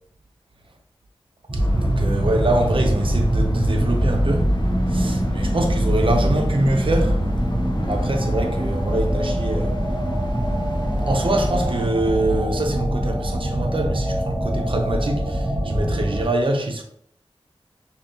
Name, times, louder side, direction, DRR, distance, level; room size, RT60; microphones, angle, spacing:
sound 1, 1.5-16.2, equal, 25° right, 1.0 m, -23 dB
voice 1, 1.5-4.5 4.9-7.4 7.9-9.8 11.1-16.8, right 1 dB, 60° right, 0.6 m, -24 dB
sound 2, 1.6-11.9, left 2 dB, 50° left, 0.6 m, -35 dB
5.1 x 2.3 x 2.7 m
wide cardioid pair, 65°, 10 cm